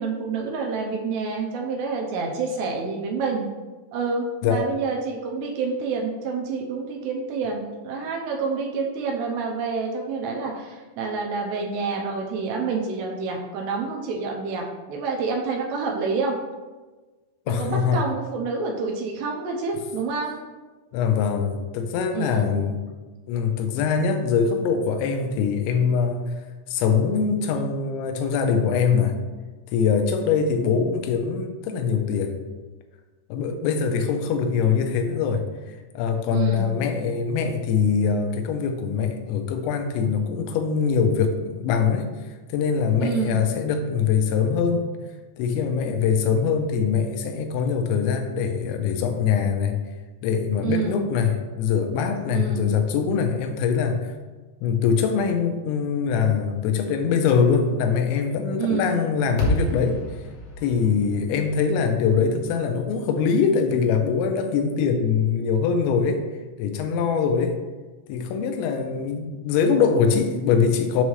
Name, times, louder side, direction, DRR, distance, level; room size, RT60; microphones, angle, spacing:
voice 1, 0.0-3.5 3.9-16.4 17.5-20.4 22.1-22.5 36.3-36.8 43.0-43.4 50.6-51.1 52.3-52.7 58.6-59.0, right 4 dB, 80° right, 0 dB, 2.6 m, -28 dB
voice 2, 17.5-18.0 20.9-22.8 23.3-26.3 26.7-29.2 29.7-32.4 33.3-42.1 42.5-44.9 45.4-49.8 50.2-54.1 54.6-60.0 60.6-66.2 66.6-67.6 68.1-71.0, left 6 dB, 90° left, 6 dB, 3.0 m, -23 dB
sound 1, 59.4-63.7, left 1 dB, 60° left, 2.7 m, -31 dB
7.2 x 3.1 x 5.5 m, 1.3 s
omnidirectional pair, 5.2 m